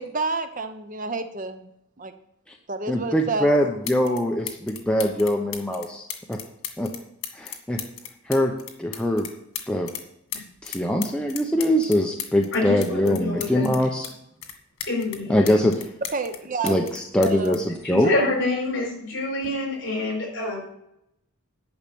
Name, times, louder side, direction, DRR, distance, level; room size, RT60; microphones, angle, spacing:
voice 1, 0.0-1.7 2.0-2.1 2.7-3.6 16.1-16.7 17.2-17.6 18.0-18.3, right 3 dB, 35° right, 8 dB, 0.7 m, -29 dB
voice 2, 2.9-6.4 6.8-6.9 7.3-7.8 8.3-8.5 8.8-9.3 9.7-9.9 10.6-14.1 15.3-15.7 16.6-18.1, equal, 5° left, 1 dB, 0.8 m, -23 dB
sound 1, 3.4-3.5 3.8-4.2 4.5-10.0 10.3-14.1 14.4-16.4 16.7-18.5 19.4-19.6, left 9 dB, 85° left, 1.7 m, -36 dB
voice 3, 12.5-13.7 14.9-15.7 17.8-20.6, left 2 dB, 55° left, 0 dB, 4.9 m, -27 dB
10.5 x 5.7 x 8.5 m, 0.77 s
head